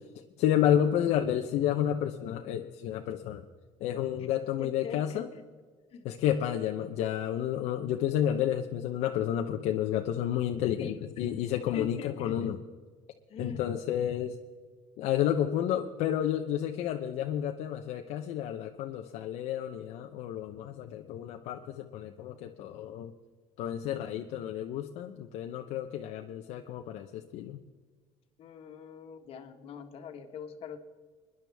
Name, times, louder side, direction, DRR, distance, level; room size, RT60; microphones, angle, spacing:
voice 1, 0.4-3.4 3.8-5.3 6.0-12.6 13.4-14.4 15.0-23.1 23.6-27.6, left 10 dB, 70° left, 4 dB, 0.8 m, -30 dB
voice 2, 4.6-5.2 5.9-6.1 10.7-11.3 11.7-12.3 13.3-13.7 28.4-30.8, left 6 dB, 50° left, 6 dB, 1.5 m, -43 dB
25.5 x 10.5 x 3.5 m, 1.5 s
cardioid pair, 130°, 12 cm